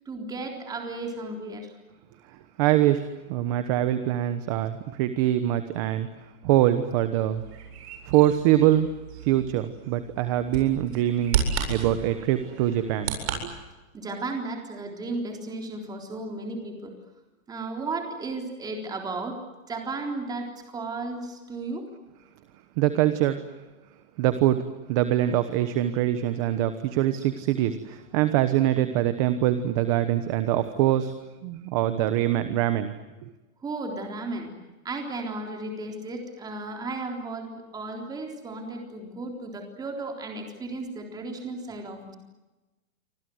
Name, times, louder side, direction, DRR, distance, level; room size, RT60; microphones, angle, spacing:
voice 1, 0.1-1.7 13.9-16.9 17.5-19.4 19.7-21.8 33.6-34.5 34.8-42.2, right 3 dB, 10° right, 2 dB, 3.8 m, -34 dB
voice 2, 2.6-6.1 6.4-7.4 8.0-8.9 9.2-11.4 11.7-13.5 22.8-23.5 24.2-31.1 31.4-32.9, right 12 dB, 25° right, 10 dB, 1.1 m, -24 dB
Bird vocalization bird call bird song, 7.3-13.4, right 7 dB, 50° right, 7.9 m, -33 dB
29.0 x 25.5 x 7.9 m, 1.1 s
hypercardioid pair, 175°, 43 cm